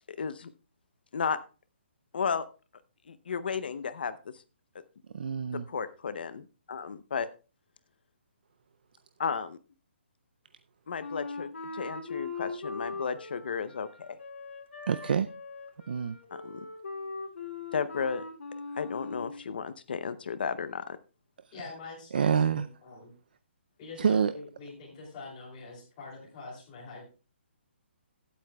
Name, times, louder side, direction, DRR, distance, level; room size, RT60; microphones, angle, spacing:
voice 1, 0.1-0.5 1.1-1.4 2.1-2.4 3.1-4.3 5.5-7.3 9.2-9.6 10.9-14.2 16.3-16.6 17.7-18.2 18.8-21.0, left 6 dB, 50° left, 14 dB, 0.7 m, -34 dB
voice 2, 5.1-5.7 14.9-15.3 15.9-16.2 22.1-22.7 24.0-24.3, right 7 dB, 50° right, 12 dB, 0.4 m, -26 dB
Wind instrument woodwind instrument, 11.0-19.4, left 3 dB, 75° left, 2.8 m, -40 dB
voice 3, 21.5-23.1 23.8-27.1, left 3 dB, 20° left, -6 dB, 2.9 m, -45 dB
18.0 x 8.4 x 2.2 m, 0.32 s
hypercardioid pair, 175°, 6 cm